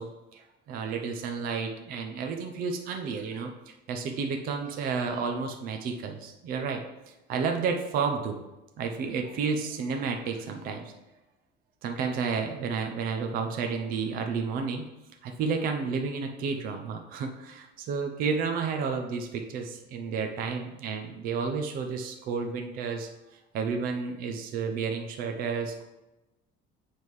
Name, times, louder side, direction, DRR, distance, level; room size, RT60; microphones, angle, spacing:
voice 1, 0.0-3.5 3.9-6.8 7.3-8.4 8.8-10.9 11.8-14.9 15.2-23.1 23.5-25.8, right 5 dB, 50° right, 4 dB, 0.7 m, -31 dB
7.2 x 6.2 x 3.2 m, 1.0 s
cardioid pair, 180°, 19 cm